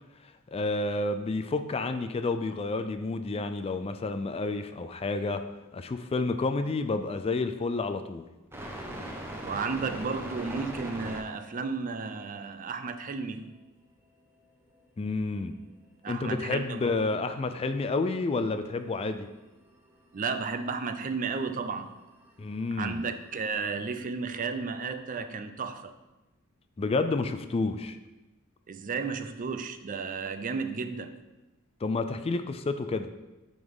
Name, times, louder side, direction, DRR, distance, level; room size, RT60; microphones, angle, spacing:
voice 1, 0.5-5.4 5.7-8.2 15.0-15.5 16.1-19.3 22.4-23.0 26.8-28.0 31.8-33.1, left 3 dB, 25° left, 9 dB, 0.3 m, -30 dB
sound 1, 8.5-11.2 14.7-14.8 15.0-15.1 15.3-16.6 16.9-24.0, right 1 dB, 10° right, 0.9 m, -42 dB
voice 2, 9.4-13.5 16.0-17.1 20.1-22.0 22.7-25.9 28.7-31.1, right 4 dB, 40° right, 8 dB, 0.5 m, -33 dB
7.8 x 3.9 x 5.4 m, 1.1 s
head